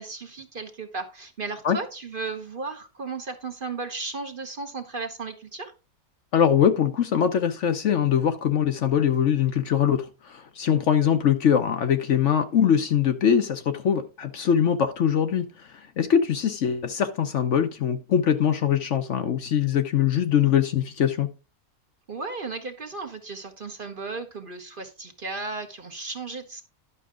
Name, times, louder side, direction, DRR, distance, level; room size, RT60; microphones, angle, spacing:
voice 1, 0.0-5.7 22.1-26.6, right 3 dB, 40° right, 1.0 m, -35 dB
voice 2, 6.3-21.3, left 8 dB, 60° left, 1.0 m, -22 dB
11.0 x 6.3 x 3.6 m
omnidirectional pair, 1.6 m